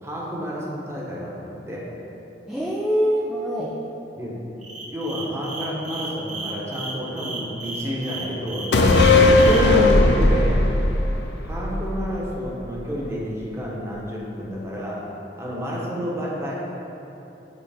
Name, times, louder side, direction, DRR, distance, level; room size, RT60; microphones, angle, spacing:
voice 1, 0.0-1.9 4.2-4.4 4.9-8.9 10.0-10.6 11.4-15.0 15.4-16.6, equal, 15° right, -5 dB, 1.0 m, -31 dB
voice 2, 2.5-3.8 9.5-10.4, equal, ahead, -5 dB, 0.4 m, -23 dB
sound 1, 4.6-9.6, right 3 dB, 45° right, 0.8 m, -34 dB
sound 2, 8.7-12.3 12.6-12.7, left 2 dB, 70° left, 0.5 m, -17 dB
7.8 x 3.8 x 3.5 m, 3.0 s
head